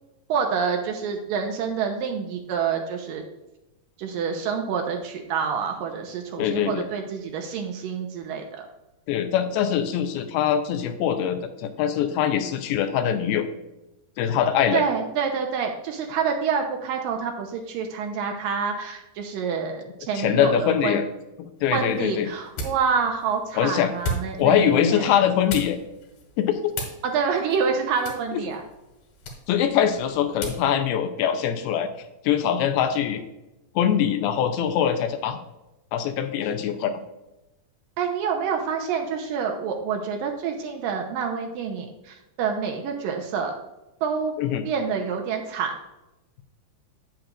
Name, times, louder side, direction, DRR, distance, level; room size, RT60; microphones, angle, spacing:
voice 1, 0.3-3.2 4.0-8.6 14.7-21.0 21.7-25.2 27.0-28.6 38.0-43.5 44.0-44.3 44.6-45.7, right 6 dB, 75° right, 3 dB, 2.3 m, -27 dB
voice 2, 6.4-6.9 9.1-13.5 14.2-14.8 20.2-21.0 21.4-22.3 23.6-23.9 24.4-25.8 26.4-26.7 28.3-28.4 29.5-31.9 32.2-33.2 33.8-35.4 35.9-37.0 44.4-44.6, left 9 dB, 85° left, 8 dB, 2.6 m, -23 dB
sound 1, 21.6-30.7, equal, 70° left, 3.5 m, -38 dB
8.9 x 8.8 x 2.5 m, 0.98 s
omnidirectional pair, 4.5 m